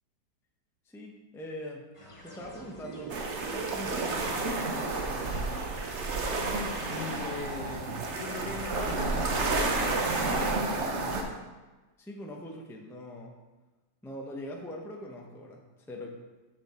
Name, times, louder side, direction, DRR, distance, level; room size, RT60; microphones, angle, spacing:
voice 1, 0.9-1.9 2.2-3.2 3.5-5.2 12.0-13.3 14.0-16.1, left 1 dB, ahead, 0 dB, 0.6 m, -42 dB
sound 1, 1.9-7.1, left 1 dB, 20° left, 1.0 m, -50 dB
sound 2, 2.2-10.9, right 6 dB, 75° right, 1.2 m, -44 dB
sound 3, 3.1-11.2, right 3 dB, 50° right, 1.0 m, -31 dB
voice 2, 6.9-7.9 8.1-11.4, left 5 dB, 80° left, 1 dB, 1.8 m, -41 dB
7.3 x 6.6 x 4.4 m, 1.2 s
omnidirectional pair, 1.8 m